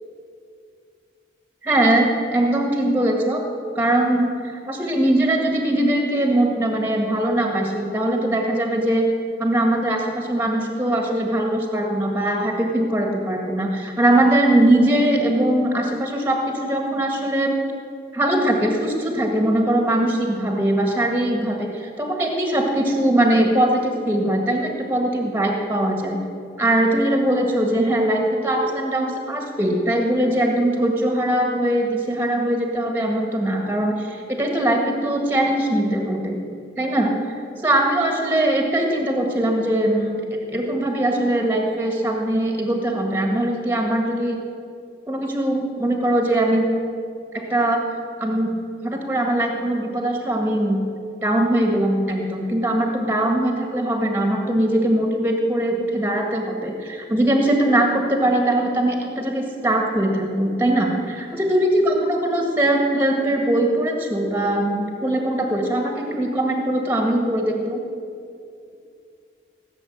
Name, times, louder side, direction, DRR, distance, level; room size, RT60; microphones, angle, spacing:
voice 1, 1.6-3.4 3.8-9.0 9.4-17.6 18.1-26.2 26.6-36.4 36.8-37.1 37.6-44.4 45.1-46.7 47.3-47.9 48.2-48.5 48.8-50.8 51.2-67.8, right 1 dB, 10° right, 2 dB, 1.7 m, -21 dB
17.0 x 7.1 x 8.6 m, 2.5 s
head